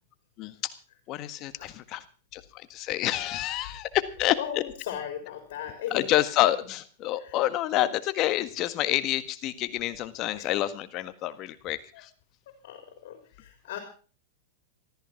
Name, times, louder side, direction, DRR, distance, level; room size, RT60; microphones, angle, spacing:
voice 1, 0.4-0.7 1.1-2.0 2.3-4.6 5.9-12.1, left 14 dB, 40° left, 13 dB, 1.6 m, -28 dB
voice 2, 4.4-6.1 6.4-6.5 7.2-7.4 10.3-10.5 11.9-12.0 12.6-13.8, left 10 dB, 65° left, 6 dB, 3.9 m, -37 dB
14.5 x 13.5 x 5.8 m, 0.38 s
hypercardioid pair, 130°, 0 cm